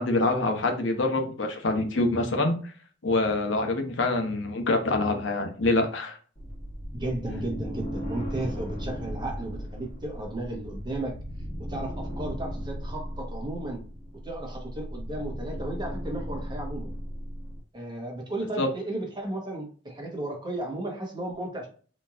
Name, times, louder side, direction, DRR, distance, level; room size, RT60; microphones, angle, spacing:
voice 1, 0.0-2.6 3.0-6.2 18.6-18.7, left 2 dB, 80° left, 4 dB, 0.9 m, -25 dB
sound 1, 6.4-17.6, equal, 35° left, 1.4 m, -36 dB
voice 2, 6.9-11.2 11.6-13.8 14.2-16.9 17.7-21.7, right 1 dB, 25° right, 0 dB, 1.2 m, -34 dB
4.3 x 3.1 x 2.5 m, 0.40 s
head